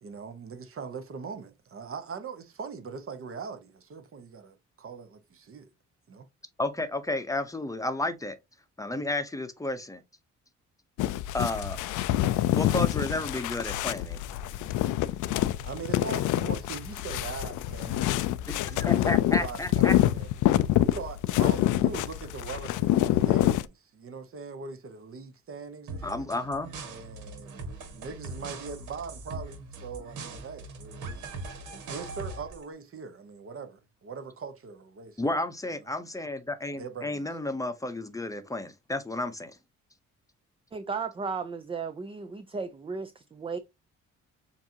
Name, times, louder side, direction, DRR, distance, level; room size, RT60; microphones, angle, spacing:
voice 1, 0.0-5.7 6.1-6.3 15.6-18.3 18.7-20.4 20.9-26.3 26.8-31.3 31.7-35.3 36.7-37.3, right 5 dB, 45° right, 1.0 m, -41 dB
voice 2, 6.6-8.4 8.8-10.0 11.3-11.8 12.6-14.2 18.5-19.9 26.0-26.7 35.2-39.6, left 2 dB, 10° left, 0.7 m, -32 dB
sound 1, 11.0-23.7, left 13 dB, 85° left, 0.4 m, -26 dB
sound 2, 25.9-32.6, right 3 dB, 75° right, 1.7 m, -41 dB
voice 3, 40.7-43.6, right 5 dB, 20° right, 0.4 m, -35 dB
7.1 x 2.7 x 2.8 m
cardioid pair, 90°, 30 cm